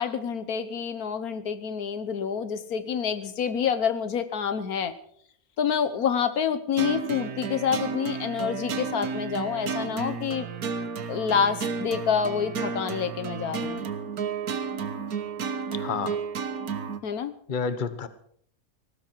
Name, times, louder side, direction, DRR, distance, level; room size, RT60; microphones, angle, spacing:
voice 1, 0.0-4.9 5.6-10.5 11.1-13.8 17.0-17.3, left 7 dB, 80° left, 12 dB, 1.6 m, -27 dB
sound 1, 6.8-17.0, right 5 dB, 80° right, 1.7 m, -32 dB
voice 2, 15.8-16.2 17.5-18.1, left 5 dB, 35° left, 12 dB, 1.2 m, -29 dB
18.5 x 15.5 x 4.6 m, 0.62 s
omnidirectional pair, 1.5 m